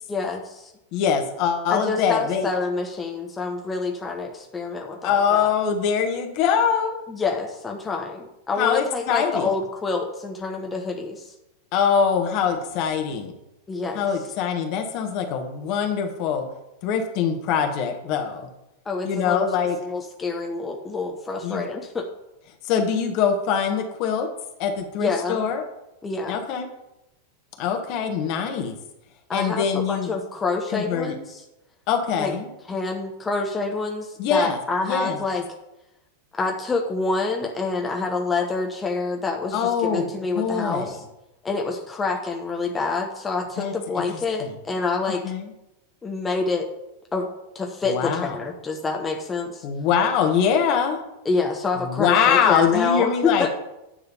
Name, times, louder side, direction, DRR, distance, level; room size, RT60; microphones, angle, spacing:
voice 1, 0.1-0.7 1.7-5.5 7.1-11.3 13.7-14.0 18.8-19.4 19.8-22.1 25.0-25.4 26.0-26.4 29.3-31.4 32.2-32.3 32.7-35.4 36.3-41.0 41.4-45.2 46.0-46.7 47.1-47.3 47.5-49.6 51.2-53.5, left 4 dB, 15° left, 1 dB, 1.1 m, -27 dB
voice 2, 0.9-2.5 5.0-7.0 8.6-9.5 11.7-13.3 13.9-16.5 16.8-18.5 19.0-19.8 21.4-21.6 22.6-24.3 24.6-25.6 26.3-26.7 27.6-28.8 29.3-30.1 30.7-31.1 31.9-32.5 34.2-34.6 34.8-35.2 39.5-40.1 40.3-40.9 43.6-44.5 45.2-45.5 47.8-48.4 49.6-51.0 51.8-53.5, left 7 dB, 45° left, 4 dB, 1.5 m, -23 dB
10.0 x 3.9 x 7.2 m, 0.93 s
figure-of-eight pair, 90°, 0 cm